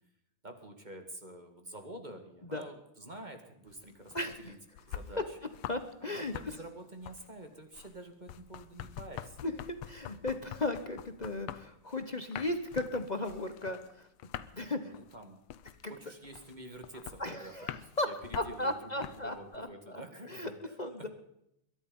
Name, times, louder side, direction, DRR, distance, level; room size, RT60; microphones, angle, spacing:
voice 1, 0.4-4.6 4.9-5.4 6.0-9.5 14.7-15.4 15.9-21.1, right 1 dB, 20° right, 5 dB, 1.8 m, -48 dB
sound 1, 3.7-5.9 6.2-19.6, left 11 dB, 85° left, 1.7 m, -46 dB
voice 2, 4.1-4.5 5.7-6.3 9.4-14.1 14.5-14.9 15.8-15.9 17.2-18.1 18.3-20.0 20.3-21.1, left 2 dB, 35° left, 8 dB, 0.7 m, -36 dB
22.0 x 11.0 x 5.4 m, 0.78 s
omnidirectional pair, 2.3 m